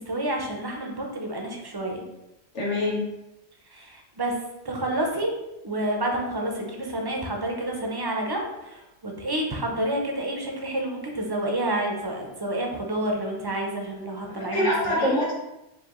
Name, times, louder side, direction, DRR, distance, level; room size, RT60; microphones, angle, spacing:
voice 1, 0.0-2.0 3.7-4.3 4.6-5.4 5.6-15.2, right 1 dB, 30° right, 1 dB, 0.5 m, -29 dB
voice 2, 2.5-3.0 14.4-15.3, left 1 dB, 85° left, -5 dB, 1.6 m, -24 dB
4.7 x 2.7 x 3.0 m, 0.93 s
omnidirectional pair, 1.2 m